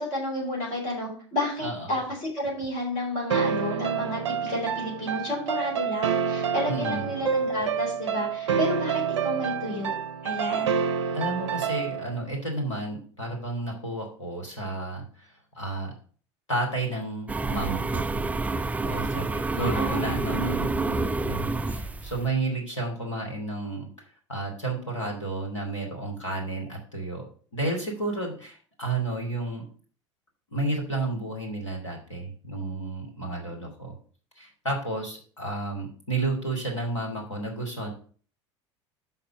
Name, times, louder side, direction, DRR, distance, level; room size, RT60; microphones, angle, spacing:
voice 1, 0.0-9.9 10.2-10.8 19.5-20.6, left 1 dB, 50° left, -3 dB, 4.1 m, -31 dB
voice 2, 1.6-2.0 6.7-7.1 11.1-15.3 15.5-15.9 16.5-18.1 18.8-29.6 30.5-33.9 34.4-37.9, right 2 dB, 85° left, 0 dB, 2.6 m, -32 dB
sound 1, 3.3-12.2, right 7 dB, 70° right, 0.5 m, -28 dB
sound 2, 17.3-22.3, right 3 dB, 10° right, 0.4 m, -28 dB
5.7 x 5.5 x 6.1 m, 0.43 s
figure-of-eight pair, 75°, 15 cm